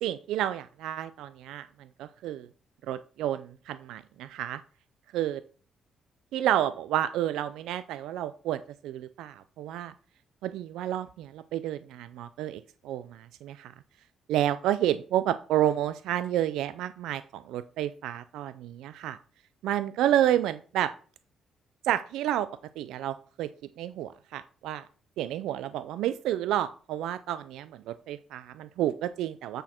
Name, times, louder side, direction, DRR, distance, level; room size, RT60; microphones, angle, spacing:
voice 1, 0.0-1.7 2.0-2.5 2.9-4.6 5.1-5.4 6.3-9.9 10.4-13.7 14.3-19.2 19.6-20.9 21.8-22.5 22.8-23.5 23.8-24.8 25.2-29.6, right 12 dB, 90° right, 14 dB, 0.4 m, -30 dB
7.9 x 6.3 x 4.4 m, 0.41 s
cardioid pair, 90°, 0 cm